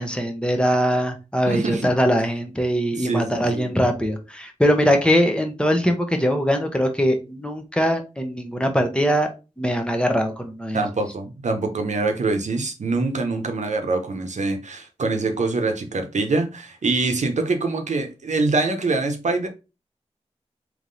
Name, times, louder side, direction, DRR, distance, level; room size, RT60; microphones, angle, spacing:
voice 1, 0.0-9.3 9.6-10.8, equal, 10° left, 0.9 m, -21 dB
voice 2, 1.5-1.9 2.9-3.7 10.7-19.5, right 3 dB, 80° right, 0.8 m, -24 dB
3.6 x 3.0 x 3.8 m
wide cardioid pair, 65°, 12 cm